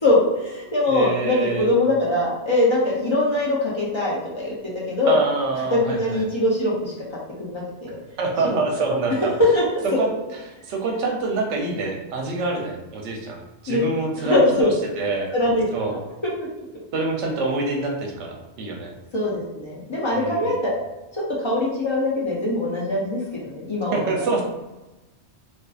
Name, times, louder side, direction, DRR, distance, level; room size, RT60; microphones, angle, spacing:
voice 1, 0.0-4.5 4.9-5.2 5.7-6.9 7.4-7.9 8.4-8.6 9.5-9.9 13.7-13.8 14.2-14.8 15.3-15.7 16.4-16.5 19.1-20.7 21.1-24.3, left 1 dB, 45° left, -5 dB, 0.3 m, -22 dB
voice 2, 0.9-1.7 5.1-6.2 8.2-9.3 10.0-10.1 10.5-14.7 15.0-15.3 15.7-16.0 16.9-18.9 20.1-20.5 23.9-24.4, right 3 dB, 80° right, 0 dB, 0.9 m, -26 dB
2.5 x 2.4 x 2.3 m, 1.1 s
omnidirectional pair, 1.2 m